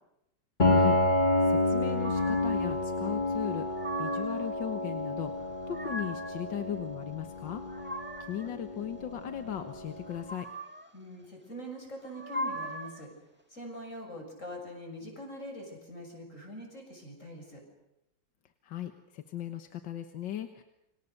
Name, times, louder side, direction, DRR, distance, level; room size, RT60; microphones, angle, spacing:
Piano, 0.6-10.2, left 2 dB, 25° left, 2.3 m, -29 dB
voice 1, 0.7-3.7 4.0-7.6 8.3-10.5 18.6-20.6, left 10 dB, 85° left, 8 dB, 2.0 m, -38 dB
sound 1, 2.0-2.6 3.4-4.4 5.4-6.4 7.3-8.5 10.0-10.9 12.0-13.0, right 1 dB, 5° right, 1.7 m, -39 dB
voice 2, 10.9-13.1 13.5-17.6, equal, 45° left, 2 dB, 7.0 m, -43 dB
29.5 x 25.5 x 6.7 m, 0.87 s
omnidirectional pair, 1.9 m